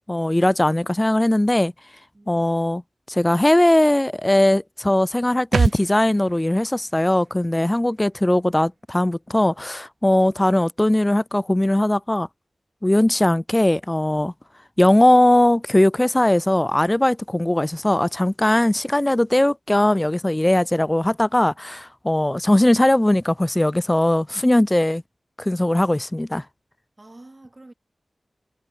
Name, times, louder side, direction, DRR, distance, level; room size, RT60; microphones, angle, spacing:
voice 1, 0.1-1.7 2.3-2.8 3.1-12.3 12.8-14.3 14.8-25.0 25.4-26.4, left 1 dB, 15° left, 0.5 m, -19 dB
voice 2, 2.1-2.5 27.0-27.7, right 2 dB, 25° right, 5.8 m, -46 dB
sound 1, 5.5-9.0 9.3-9.4, right 5 dB, 85° right, 0.4 m, -28 dB
wide cardioid pair, 100°, 0 cm